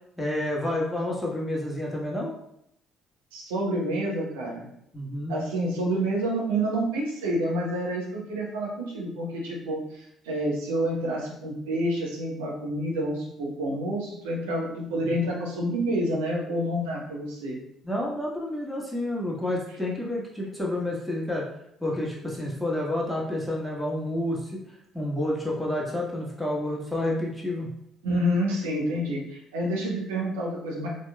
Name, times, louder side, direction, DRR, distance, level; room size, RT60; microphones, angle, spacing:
voice 1, 0.2-2.3 4.9-5.4 15.0-15.1 17.8-21.5 21.8-24.6 24.9-27.7, left 1 dB, ahead, -3 dB, 1.2 m, -29 dB
voice 2, 3.3-4.7 5.3-17.6 28.0-30.9, right 1 dB, 70° right, -2 dB, 0.8 m, -28 dB
4.1 x 3.1 x 2.2 m, 0.75 s
figure-of-eight pair, 50°, 0 cm